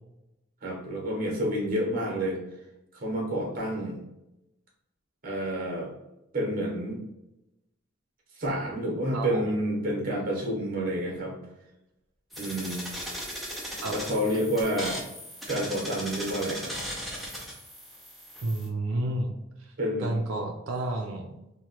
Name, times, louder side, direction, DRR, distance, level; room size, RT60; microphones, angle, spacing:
voice 1, 0.6-2.4 2.9-4.0 5.2-5.9 6.3-7.0 8.4-11.3 12.4-12.8 13.9-15.0 15.5-16.7 19.8-20.1, equal, 45° right, -1 dB, 0.8 m, -29 dB
voice 2, 9.1-9.6 13.8-14.0 18.4-19.3 19.6-19.7 20.0-21.3, right 2 dB, 90° right, 2 dB, 0.4 m, -30 dB
sound 1, 12.3-18.7, equal, ahead, 0.4 m, -38 dB
2.9 x 2.1 x 2.8 m, 0.92 s
head